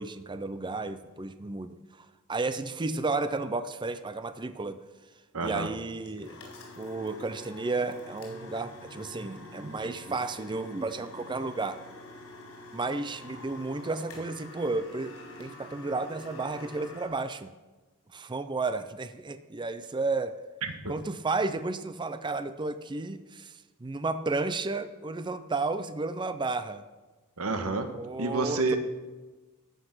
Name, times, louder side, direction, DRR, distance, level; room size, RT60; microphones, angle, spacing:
voice 1, 0.0-4.8 5.4-6.4 6.8-11.8 12.7-17.5 18.1-20.3 20.9-26.8 27.9-28.8, right 3 dB, 20° right, 11 dB, 0.5 m, -32 dB
voice 2, 5.3-5.7 20.6-20.9 27.4-27.9 28.2-28.8, right 3 dB, 80° right, 7 dB, 1.4 m, -29 dB
sound 1, 6.0-17.1, left 2 dB, 70° left, 4.1 m, -47 dB
13.5 x 8.3 x 6.1 m, 1.2 s
head